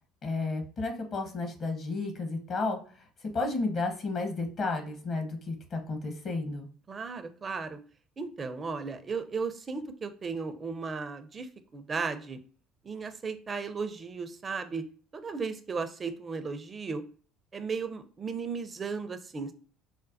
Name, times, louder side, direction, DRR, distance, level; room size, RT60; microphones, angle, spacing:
voice 1, 0.2-2.8 3.3-6.7, left 3 dB, 45° left, 4 dB, 1.0 m, -32 dB
voice 2, 6.9-7.8 8.2-12.4 12.8-14.9 15.1-17.0 17.5-19.5, right 5 dB, 30° right, 9 dB, 0.5 m, -35 dB
5.1 x 2.1 x 2.6 m, 0.42 s
hypercardioid pair, 65°, 0 cm